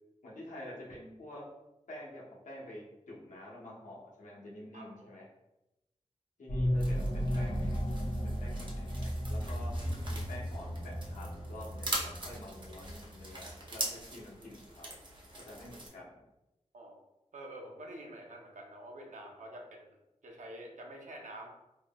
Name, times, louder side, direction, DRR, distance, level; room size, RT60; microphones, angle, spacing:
voice 1, 0.2-1.5 1.9-5.3 6.4-9.8 10.1-14.9 15.4-16.2, left 1 dB, 85° left, -5 dB, 1.0 m, -48 dB
voice 2, 4.7-5.1 16.7-17.0 17.3-20.0 20.2-21.5, right 1 dB, 85° right, 1 dB, 0.7 m, -47 dB
sound 1, 6.5-13.5, equal, 45° left, 0.9 m, -35 dB
sound 2, 6.8-15.9, right 1 dB, 40° right, 0.9 m, -43 dB
3.6 x 3.1 x 2.3 m, 0.94 s
cardioid pair, 55°, 13 cm